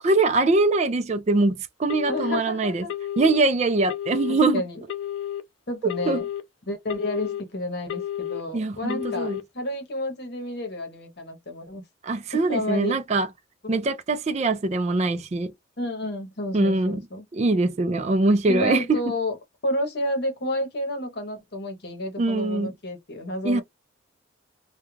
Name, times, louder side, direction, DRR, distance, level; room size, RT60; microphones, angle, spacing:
voice 1, 0.0-2.9 3.2-4.6 6.1-6.2 8.5-9.4 12.0-13.3 13.7-15.5 16.5-17.0 17.3-18.8 22.2-22.7 23.4-23.6, right 2 dB, 35° right, 0.3 m, -22 dB
Telephone, 1.9-2.4 2.9-3.4 3.9-4.4 4.9-5.4 5.9-6.4 6.9-7.4 7.9-8.4 8.9-9.4, left 11 dB, 80° left, 0.4 m, -31 dB
voice 2, 2.1-2.9 4.3-4.8 5.7-6.3 6.7-11.8 12.3-13.0 13.6-13.8 15.8-17.2 18.5-19.4 19.6-23.6, left 1 dB, 55° left, 0.9 m, -30 dB
2.3 x 2.2 x 3.0 m
head